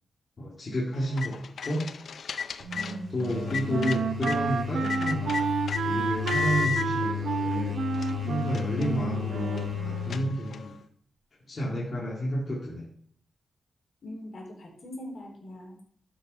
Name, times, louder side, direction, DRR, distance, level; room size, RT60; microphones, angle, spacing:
voice 1, 0.4-1.8 3.1-5.5 5.8-10.8 11.5-12.8, equal, 40° left, -5 dB, 2.2 m, -31 dB
sound 1, 0.9-4.4 4.8-5.8 6.3-6.9 7.5-7.6 7.9-10.8, left 6 dB, 70° left, 0.6 m, -35 dB
sound 2, 2.6-10.3, left 8 dB, 55° right, 1.9 m, -34 dB
Wind instrument woodwind instrument, 2.6-10.4, right 6 dB, 85° right, 0.9 m, -31 dB
voice 2, 2.7-3.1 14.0-15.8, equal, 55° left, -1 dB, 3.8 m, -41 dB
12.0 x 5.4 x 5.5 m, 0.63 s
wide cardioid pair, 130°, 0 cm